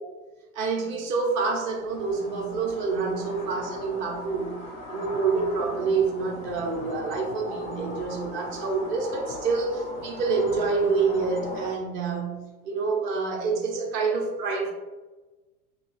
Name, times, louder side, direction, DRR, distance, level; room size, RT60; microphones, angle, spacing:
voice 1, 0.5-4.6 4.9-14.7, right 4 dB, 25° right, 2 dB, 0.6 m, -27 dB
sound 1, 1.6-11.7, left 1 dB, 15° left, 0.4 m, -38 dB
2.9 x 2.3 x 3.1 m, 1.2 s
figure-of-eight pair, 85°, 46 cm